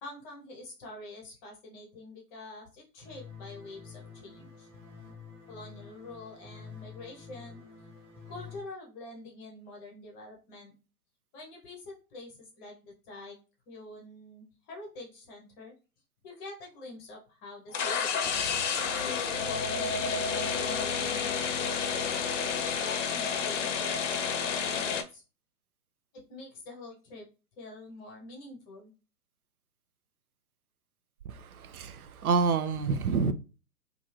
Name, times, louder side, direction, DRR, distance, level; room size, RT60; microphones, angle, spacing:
voice 1, 0.0-4.7 5.5-7.6 8.2-10.7 11.3-13.4 13.7-15.7 16.2-18.5 19.0-22.3 22.7-25.2 26.1-27.2 27.6-28.9, left 2 dB, 20° left, 0.7 m, -46 dB
sound 1, 3.0-8.6, left 6 dB, 5° right, 1.2 m, -48 dB
sound 2, 17.7-25.0, left 6 dB, 55° left, 0.6 m, -30 dB
voice 2, 31.3-33.3, right 5 dB, 70° right, 0.6 m, -28 dB
2.7 x 2.4 x 3.1 m
figure-of-eight pair, 125°, 46 cm